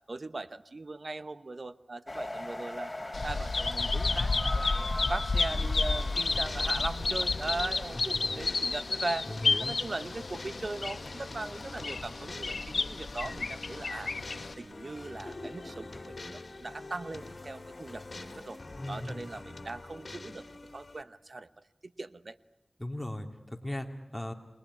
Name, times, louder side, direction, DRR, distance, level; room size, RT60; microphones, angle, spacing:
voice 1, 0.1-2.9 3.2-9.3 9.6-14.1 14.6-18.6 18.9-20.4 20.7-21.5 21.8-22.4, right 2 dB, 60° right, 14 dB, 0.9 m, -39 dB
sound 1, 2.1-13.1 13.5-19.4, left 1 dB, 30° left, 3.1 m, -44 dB
Bird vocalization bird call bird song, 3.1-14.5, left 3 dB, 85° left, 1.2 m, -31 dB
sound 2, 5.5-21.0, left 2 dB, 65° left, 2.3 m, -46 dB
voice 2, 9.3-9.8 18.8-19.3 22.8-24.3, left 1 dB, 10° left, 4 dB, 3.1 m, -37 dB
28.0 x 20.5 x 9.9 m, 0.98 s
cardioid pair, 45°, 0 cm